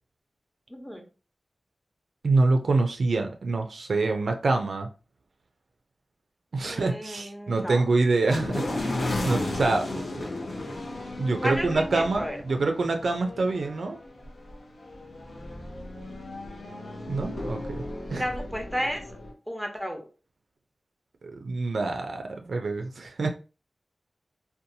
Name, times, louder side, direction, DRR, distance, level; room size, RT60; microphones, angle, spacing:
voice 1, 0.7-1.0 6.6-7.8 11.4-12.4 18.1-19.0 19.5-20.0, equal, 5° left, 3 dB, 0.8 m, -32 dB
voice 2, 2.2-4.9 6.5-8.9 9.2-10.0 11.2-14.0 17.1-18.2 21.2-23.3, right 3 dB, 85° right, 5 dB, 0.3 m, -26 dB
sound 1, 8.3-19.3, left 1 dB, 80° left, 0.6 m, -34 dB
2.6 x 2.2 x 2.6 m, 0.34 s
cardioid pair, 40°, 0 cm